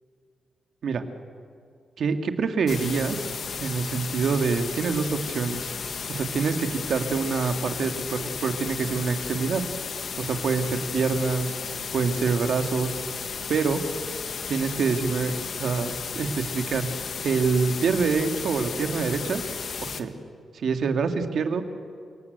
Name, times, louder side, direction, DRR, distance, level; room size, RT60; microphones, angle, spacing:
voice 1, 2.0-3.2 3.6-5.7 6.1-9.6 10.2-11.5 11.9-13.0 13.5-13.8 14.5-15.3 15.6-16.9 17.2-19.4 19.8-20.1 20.5-21.6, right 5 dB, 70° right, 6 dB, 2.1 m, -26 dB
sound 1, 2.7-20.0, left 6 dB, 60° left, 1.6 m, -34 dB
30.0 x 18.0 x 8.2 m, 2.4 s
cardioid pair, 75°, 0 cm